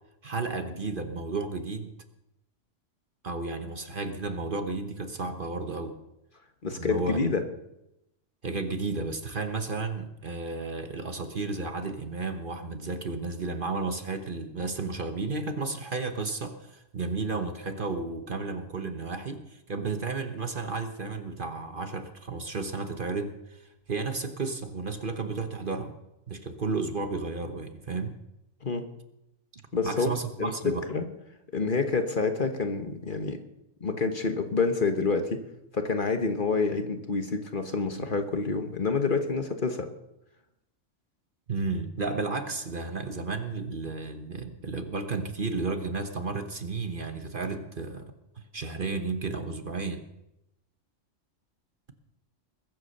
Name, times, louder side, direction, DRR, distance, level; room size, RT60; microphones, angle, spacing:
voice 1, 0.2-1.9 3.2-6.0 6.8-7.3 8.4-23.6 23.9-25.9 26.3-28.2 29.5-30.8 41.5-48.1 48.5-50.0, right 3 dB, 45° right, 7 dB, 1.2 m, -33 dB
voice 2, 6.6-7.4 28.6-28.9 29.7-31.1 31.5-33.4 33.8-35.4 35.7-39.9, left 4 dB, 40° left, 6 dB, 1.4 m, -28 dB
21.5 x 8.4 x 6.6 m, 0.88 s
omnidirectional pair, 1.3 m